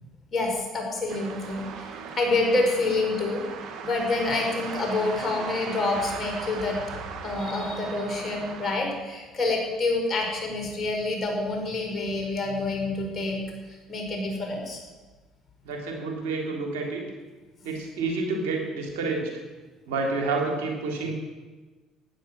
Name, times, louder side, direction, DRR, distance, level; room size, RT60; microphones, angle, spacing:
voice 1, 0.3-1.6 2.2-3.4 3.8-6.8 7.2-13.4 13.7-14.8, left 2 dB, 40° left, 1 dB, 5.4 m, -27 dB
sound 1, 1.1-8.8, right 6 dB, 65° right, 2.1 m, -38 dB
voice 2, 15.6-17.0 17.6-19.3 19.9-21.1, right 3 dB, 85° right, 1 dB, 3.4 m, -29 dB
14.5 x 10.0 x 7.6 m, 1.3 s
supercardioid pair, 75°, 0 cm